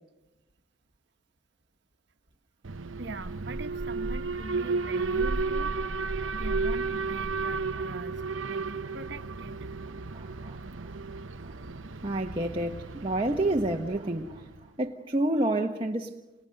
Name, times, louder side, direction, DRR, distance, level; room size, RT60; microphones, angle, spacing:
Alarm, 2.6-14.7, right 4 dB, 85° right, 0.9 m, -33 dB
voice 1, 3.0-5.8 6.0-8.2 8.4-9.6, right 2 dB, 65° right, 1.4 m, -42 dB
voice 2, 10.1-10.9 11.4-11.6 12.0-14.5 14.8-16.1, right 1 dB, 25° right, 1.3 m, -29 dB
29.5 x 29.5 x 6.7 m
head